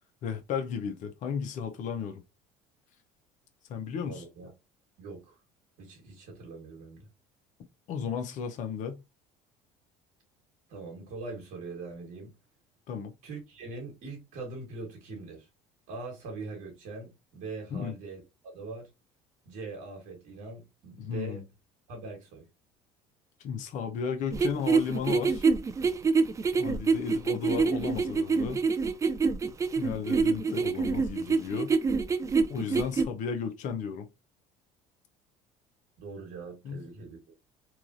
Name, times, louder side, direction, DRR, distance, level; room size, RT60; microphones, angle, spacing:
voice 1, 0.2-2.2 3.7-4.2 7.9-9.0 12.9-13.1 17.7-17.9 21.0-21.4 23.4-25.5 26.5-28.6 29.7-31.7 32.5-34.1 36.6-36.8, left 6 dB, 60° left, 0.7 m, -34 dB
voice 2, 4.0-4.5 5.0-5.3 5.8-7.1 10.7-12.3 13.2-15.5 15.9-18.2 18.5-18.9 19.5-21.4 21.9-22.4 36.0-37.2, right 3 dB, 70° right, 1.3 m, -42 dB
sound 1, 24.3-33.1, right 4 dB, 20° right, 0.3 m, -26 dB
3.0 x 2.4 x 2.5 m
supercardioid pair, 90°, 15 cm